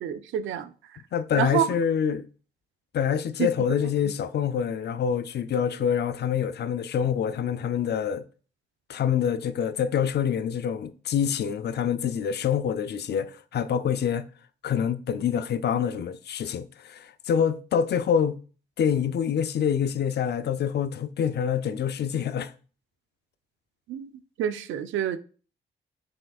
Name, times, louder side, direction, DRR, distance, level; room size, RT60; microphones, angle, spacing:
voice 1, 0.0-0.7 1.4-1.7 3.4-3.5 4.0-4.1 23.9-24.1 24.4-25.2, right 10 dB, 70° right, 0.4 m, -27 dB
voice 2, 1.1-2.3 2.9-8.2 8.9-14.2 14.6-18.4 18.8-22.5, left 8 dB, 55° left, 0.4 m, -26 dB
5.6 x 3.4 x 2.4 m
hypercardioid pair, 45°, 21 cm